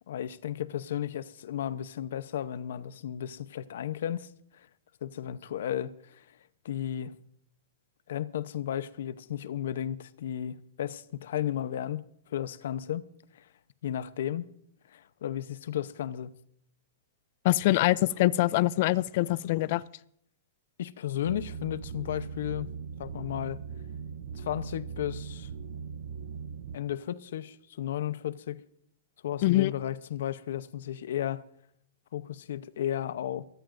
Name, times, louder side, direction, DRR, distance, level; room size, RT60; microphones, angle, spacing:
voice 1, 0.1-4.3 4.5-4.7 5.0-6.2 6.6-7.1 8.1-12.0 12.3-13.1 13.3-13.4 13.8-14.5 14.9-16.4 20.8-22.7 23.0-23.6 24.3-25.5 26.7-28.6 29.2-31.4 32.1-33.4, left 11 dB, 70° left, 0.8 m, -34 dB
voice 2, 17.4-19.8 29.4-29.7, left 17 dB, 45° left, 0.4 m, -24 dB
sound 1, 21.2-26.8, right 6 dB, 70° right, 0.9 m, -40 dB
23.5 x 13.5 x 2.6 m
hypercardioid pair, 165°, 0 cm